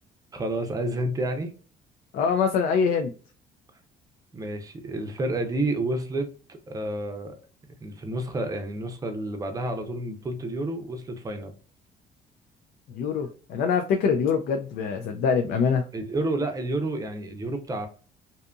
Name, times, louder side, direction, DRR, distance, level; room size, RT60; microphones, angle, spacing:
voice 1, 0.3-1.5 4.3-7.4 7.8-11.5 15.9-17.9, right 1 dB, 20° right, 6 dB, 0.6 m, -30 dB
voice 2, 2.1-3.1 12.9-15.8, left 6 dB, 65° left, 5 dB, 0.4 m, -24 dB
2.7 x 2.5 x 2.2 m, 0.39 s
cardioid pair, 110°, 17 cm